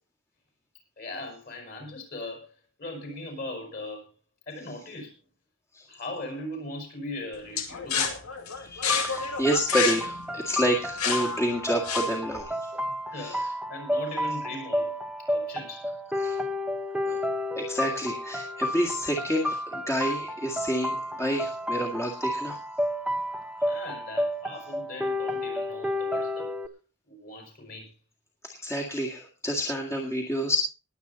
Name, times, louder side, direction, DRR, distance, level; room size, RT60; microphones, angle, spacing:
voice 1, 1.0-2.5 2.8-4.0 4.5-5.1 5.9-8.3 13.1-15.0 15.3-15.9 23.6-26.5 27.0-27.9, left 2 dB, 40° left, 4 dB, 5.1 m, -39 dB
sound 1, 7.6-12.4, left 6 dB, 80° left, 2.4 m, -30 dB
voice 2, 8.6-12.6 13.1-13.5 16.2-16.4 17.0-17.2 17.6-22.6 23.6-23.8 28.6-30.6, equal, 10° left, -1 dB, 1.9 m, -29 dB
sound 2, 8.9-26.7, left 1 dB, 5° right, 1.0 m, -31 dB
20.5 x 8.3 x 4.0 m, 0.33 s
head